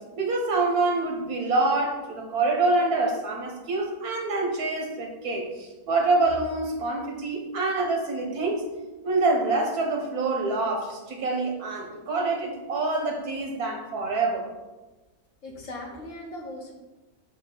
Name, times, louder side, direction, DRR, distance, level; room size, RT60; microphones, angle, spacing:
voice 1, 0.2-8.6 9.0-14.5, right 3 dB, 80° right, 1 dB, 1.7 m, -26 dB
voice 2, 15.4-16.7, left 1 dB, 60° left, 0 dB, 1.4 m, -38 dB
7.5 x 3.0 x 6.0 m, 1.1 s
omnidirectional pair, 1.6 m